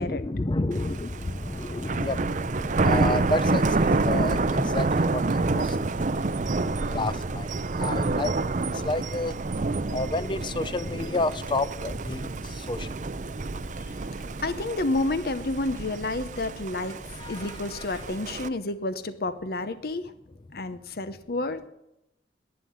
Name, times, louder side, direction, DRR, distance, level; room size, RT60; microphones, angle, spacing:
voice 1, 0.0-5.8 6.4-7.5 7.8-8.3 8.7-9.4 9.9-13.1 17.2-17.8, left 2 dB, 25° left, 15 dB, 0.5 m, -30 dB
Thunder, 0.7-18.5, right 3 dB, 45° right, 0.6 m, -28 dB
voice 2, 14.4-17.0 17.3-20.1 20.5-21.6, left 2 dB, 60° left, 12 dB, 0.8 m, -30 dB
11.0 x 9.8 x 9.8 m, 0.86 s
head